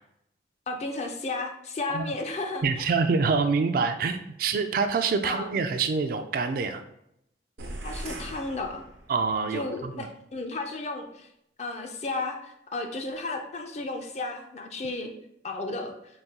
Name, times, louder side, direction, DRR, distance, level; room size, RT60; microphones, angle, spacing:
voice 1, 0.7-2.9 5.2-5.5 7.8-8.8 9.5-11.3 11.6-15.1 15.4-15.9, left 2 dB, 40° left, 4 dB, 0.4 m, -33 dB
voice 2, 2.6-6.8 9.1-10.1, right 4 dB, 55° right, 8 dB, 0.3 m, -26 dB
sound 1, 7.6-9.4, right 1 dB, 90° right, 0.6 m, -39 dB
4.0 x 2.2 x 3.6 m, 0.77 s
head